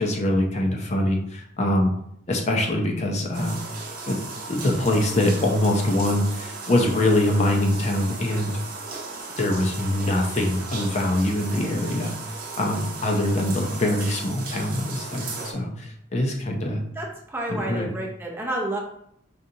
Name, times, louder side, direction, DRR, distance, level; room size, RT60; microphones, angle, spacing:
voice 1, 0.0-1.9 2.3-3.6 4.1-4.2 4.5-8.5 9.4-12.1 12.6-16.8 17.5-17.9, left 1 dB, 35° left, 1 dB, 0.5 m, -23 dB
sound 1, 3.3-15.5, right 4 dB, 50° right, 0.7 m, -36 dB
voice 2, 16.9-18.8, right 1 dB, 10° right, -1 dB, 0.5 m, -30 dB
5.1 x 2.4 x 2.8 m, 0.70 s
head